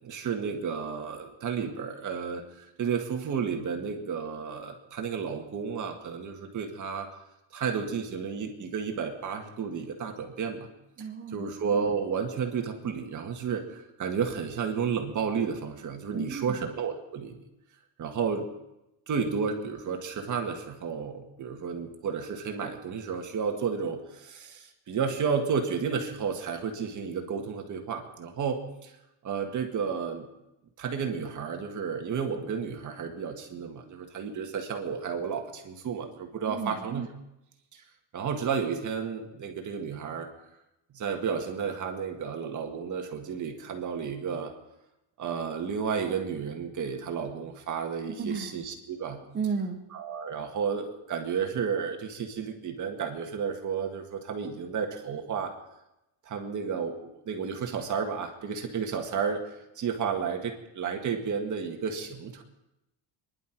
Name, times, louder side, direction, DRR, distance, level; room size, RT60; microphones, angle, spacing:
voice 1, 0.0-7.1 7.5-10.7 11.3-17.4 18.0-18.5 19.1-28.9 29.2-30.3 30.8-37.1 37.7-37.8 38.1-40.3 40.9-44.5 45.2-49.2 49.9-55.5 56.3-59.4 59.8-62.4, right 6 dB, 40° right, 3 dB, 1.9 m, -32 dB
voice 2, 11.0-11.4 16.1-16.6 36.5-36.8 48.2-48.5 49.3-49.8, right 5 dB, 25° right, 5 dB, 1.2 m, -33 dB
28.0 x 11.0 x 4.6 m, 0.92 s
cardioid pair, 170°, 46 cm